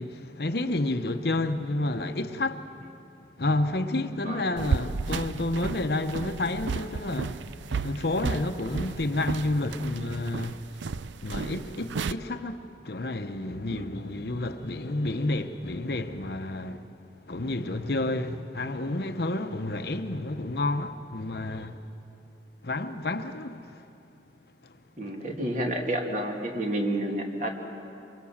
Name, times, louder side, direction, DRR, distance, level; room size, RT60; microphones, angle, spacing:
voice 1, 0.0-2.7 3.4-7.5 7.8-10.9 11.2-16.9 17.2-21.9 22.6-23.9 24.6-24.8 25.1-25.2, left 2 dB, 60° left, 0.9 m, -30 dB
sound 1, 4.6-12.1, right 4 dB, 85° right, 0.5 m, -33 dB
voice 2, 25.0-27.5, right 1 dB, 45° right, 2.3 m, -30 dB
24.5 x 23.0 x 7.3 m
head